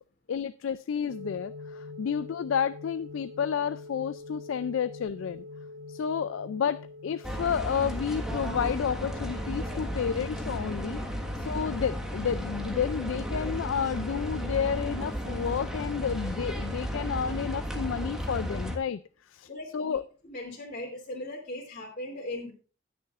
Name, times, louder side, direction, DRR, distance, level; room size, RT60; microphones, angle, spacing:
voice 1, 0.3-5.4 5.9-11.0 11.4-20.1, left 7 dB, 85° left, 0.4 m, -31 dB
sound 1, 1.1-18.2, left 3 dB, 80° right, 2.8 m, -46 dB
sound 2, 7.2-18.8, equal, 5° right, 1.5 m, -34 dB
voice 2, 19.5-20.0 20.2-22.5, left 1 dB, 45° left, 2.7 m, -38 dB
20.0 x 6.8 x 2.5 m
head